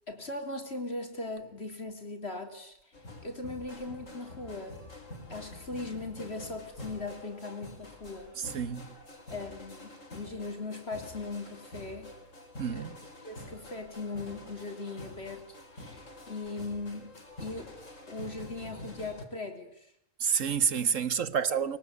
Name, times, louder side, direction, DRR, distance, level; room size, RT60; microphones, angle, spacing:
voice 1, 0.1-2.8 3.2-4.8 5.3-8.3 9.3-12.1 12.7-12.9 13.2-17.1 17.4-17.8 18.1-19.9, left 3 dB, 55° left, 4.0 m, -39 dB
sound 1, 2.9-19.3, left 2 dB, 90° left, 4.5 m, -47 dB
voice 2, 8.4-9.0 12.6-13.0 20.2-21.8, right 7 dB, 90° right, 1.8 m, -29 dB
25.5 x 23.0 x 9.7 m
omnidirectional pair, 1.3 m